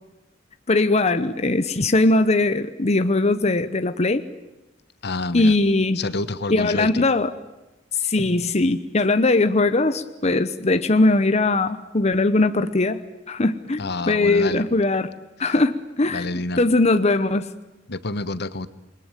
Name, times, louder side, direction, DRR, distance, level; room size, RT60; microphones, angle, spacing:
voice 1, 0.7-4.2 5.3-6.0 6.5-7.3 8.0-13.0 13.3-15.1 15.4-17.5, left 2 dB, 35° left, 10 dB, 1.0 m, -20 dB
voice 2, 5.0-5.6 6.0-7.1 13.8-14.6 15.4-15.6 16.1-16.6 17.9-18.7, left 2 dB, 60° left, 14 dB, 1.1 m, -28 dB
28.5 x 22.0 x 9.1 m, 1.0 s
head